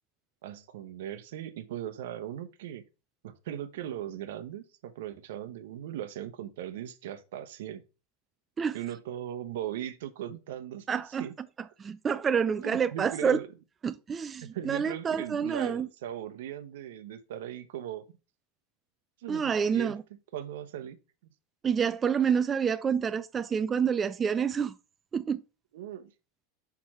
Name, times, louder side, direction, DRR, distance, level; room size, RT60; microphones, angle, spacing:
voice 1, 0.4-2.8 3.2-7.8 8.7-11.4 12.6-13.5 14.4-18.0 19.2-21.0 25.7-26.1, right 11 dB, 75° right, 0.8 m, -39 dB
voice 2, 10.9-11.2 11.8-13.4 13.8-15.9 19.3-20.0 21.6-24.8 25.1-25.4, right 7 dB, 20° right, 0.3 m, -28 dB
5.8 x 4.7 x 4.3 m
supercardioid pair, 135°, 0 cm